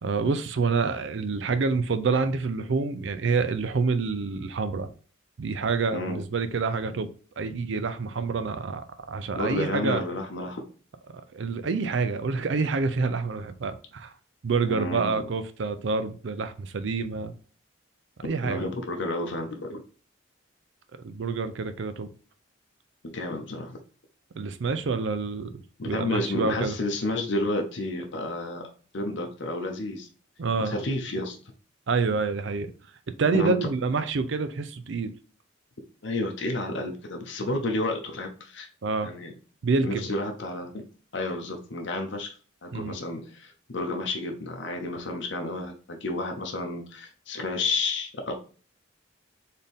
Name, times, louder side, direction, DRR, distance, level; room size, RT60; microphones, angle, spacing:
voice 1, 0.0-4.9 5.4-7.1 7.4-10.0 11.3-14.1 14.4-17.3 18.2-18.7 21.0-22.1 24.4-26.8 30.4-30.7 31.9-32.7 33.2-35.1 38.8-39.1 39.6-40.1 42.7-43.0, right 4 dB, 60° right, 0.4 m, -27 dB
voice 2, 9.4-10.6 14.7-15.3 18.2-19.8 23.0-23.8 25.8-30.1 30.6-31.4 33.3-33.7 36.0-38.7 39.0-39.3 39.8-40.8 41.1-42.4 42.6-48.3, left 2 dB, 60° left, 0.7 m, -31 dB
4.3 x 3.6 x 3.4 m
head